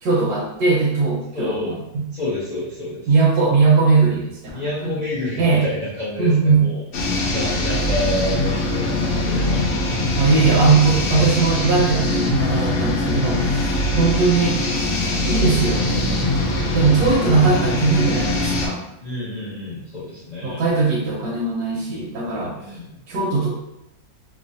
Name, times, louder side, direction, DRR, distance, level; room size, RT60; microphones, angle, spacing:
voice 1, 0.0-2.0 3.1-5.0 5.4-5.6 6.2-6.7 10.2-14.6 15.2-16.1 16.7-18.8 20.4-22.5 23.1-23.5, right 4 dB, 80° right, -5 dB, 1.1 m, -19 dB
voice 2, 1.3-1.7 2.1-3.1 4.5-6.9 7.2-9.7 19.0-20.6 22.5-23.0, left 2 dB, 90° left, -10 dB, 0.3 m, -29 dB
sound 1, 6.9-18.7, left 1 dB, 65° left, 0.7 m, -22 dB
3.0 x 2.0 x 2.6 m, 0.85 s
omnidirectional pair, 1.6 m